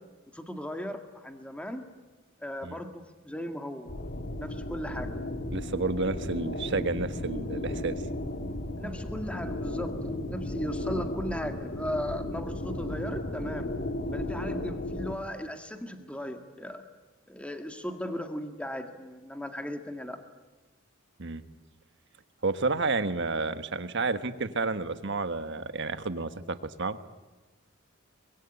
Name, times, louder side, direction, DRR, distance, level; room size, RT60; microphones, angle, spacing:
voice 1, 0.3-1.9 2.4-3.9 4.3-5.1 8.8-13.7 14.1-16.8 17.3-20.2, equal, 5° left, 6 dB, 1.9 m, -37 dB
sound 1, 3.9-15.1, left 1 dB, 50° left, 2.0 m, -35 dB
voice 2, 5.5-8.0 21.2-21.4 22.4-27.0, right 3 dB, 60° right, 11 dB, 1.4 m, -30 dB
24.5 x 22.0 x 10.0 m, 1.2 s
head